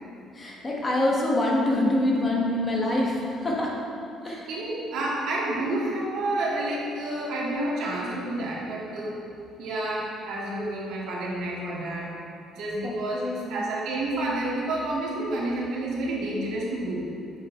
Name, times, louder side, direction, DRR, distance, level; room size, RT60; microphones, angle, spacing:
voice 1, 0.3-3.7 4.2-4.5 12.8-13.6, left 1 dB, 20° left, -2 dB, 1.2 m, -25 dB
voice 2, 4.2-9.2 9.6-12.1 12.5-13.2 13.5-17.1, right 1 dB, 70° right, -5 dB, 1.8 m, -29 dB
6.8 x 6.5 x 4.5 m, 2.7 s
cardioid pair, 165°, 0 cm